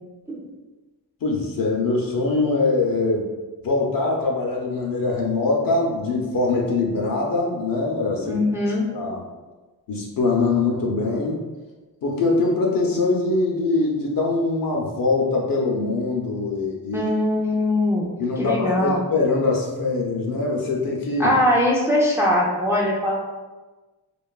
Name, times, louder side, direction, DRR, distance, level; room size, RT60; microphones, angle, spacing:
voice 1, 1.2-3.2 3.6-8.4 8.9-9.2 9.9-11.4 12.0-17.1 18.2-21.3, left 3 dB, 55° left, -1 dB, 0.5 m, -23 dB
voice 2, 8.2-8.9 16.9-18.1 18.4-19.0 21.2-23.1, left 1 dB, 5° right, -3 dB, 0.4 m, -21 dB
2.5 x 2.3 x 2.2 m, 1.2 s
cardioid pair, 75°, 41 cm